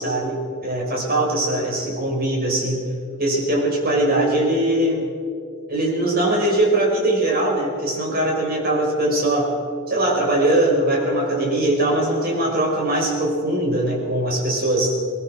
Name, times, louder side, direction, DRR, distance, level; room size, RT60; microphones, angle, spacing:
voice 1, 0.0-2.9 3.2-5.1 5.7-9.5 9.9-15.0, right 1 dB, 45° right, -1 dB, 5.1 m, -21 dB
21.0 x 20.0 x 6.4 m, 2.3 s
head